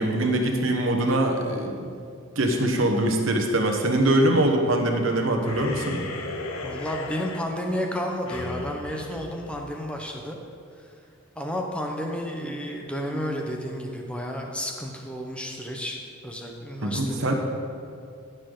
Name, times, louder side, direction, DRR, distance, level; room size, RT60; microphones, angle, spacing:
voice 1, 0.0-2.0 2.4-6.0 13.1-13.4 16.8-17.3, right 1 dB, 65° right, 3 dB, 1.2 m, -23 dB
sound 1, 5.4-10.2, left 3 dB, 85° left, 0.9 m, -37 dB
voice 2, 6.6-10.4 11.3-17.3, equal, 5° left, 1 dB, 0.9 m, -32 dB
15.0 x 6.8 x 3.9 m, 2.4 s
head